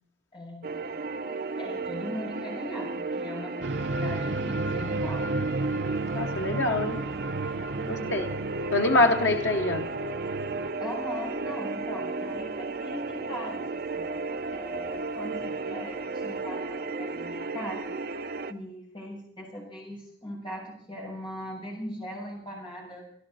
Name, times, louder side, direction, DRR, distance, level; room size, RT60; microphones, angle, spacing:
voice 1, 0.3-1.0 1.6-5.3 7.8-8.2 10.8-14.1 14.5-17.9 18.5-23.1, equal, 25° left, -3 dB, 7.0 m, -40 dB
sound 1, 0.6-18.5, right 3 dB, 55° right, 0.6 m, -34 dB
sound 2, 3.6-10.7, right 2 dB, 85° right, 0.7 m, -33 dB
voice 2, 6.1-7.0 7.9-8.3 8.7-9.9, left 2 dB, 90° left, 3 dB, 1.2 m, -24 dB
25.5 x 12.0 x 4.2 m, 0.66 s
head